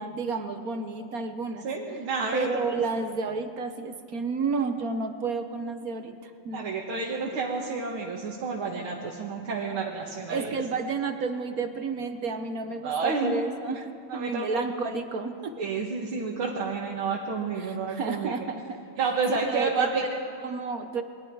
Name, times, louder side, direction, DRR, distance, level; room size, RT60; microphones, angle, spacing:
voice 1, 0.0-1.7 2.3-6.7 10.3-15.5 17.6-18.8 19.5-21.0, right 4 dB, 50° right, 7 dB, 1.3 m, -31 dB
voice 2, 1.6-2.5 6.5-10.5 12.8-13.4 14.1-14.6 15.6-18.3 19.0-20.0, right 4 dB, 80° right, -2 dB, 2.4 m, -30 dB
29.0 x 22.0 x 4.8 m, 2.4 s
omnidirectional pair, 2.3 m